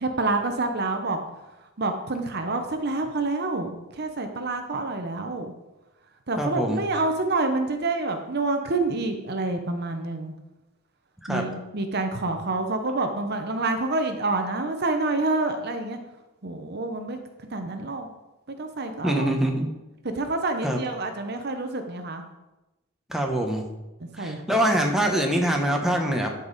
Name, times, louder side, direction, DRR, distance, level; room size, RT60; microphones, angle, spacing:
voice 1, 0.0-1.2 1.8-5.5 6.3-10.3 11.3-16.0 16.4-17.2 17.5-18.1 18.5-19.7 20.0-22.2 24.2-24.4, right 2 dB, 50° right, 6 dB, 0.9 m, -27 dB
voice 2, 6.4-6.8 11.3-11.4 19.0-19.7 20.6-20.8 23.1-23.6 24.2-26.3, right 1 dB, ahead, 1 dB, 1.1 m, -24 dB
13.0 x 5.4 x 4.1 m, 1.0 s
head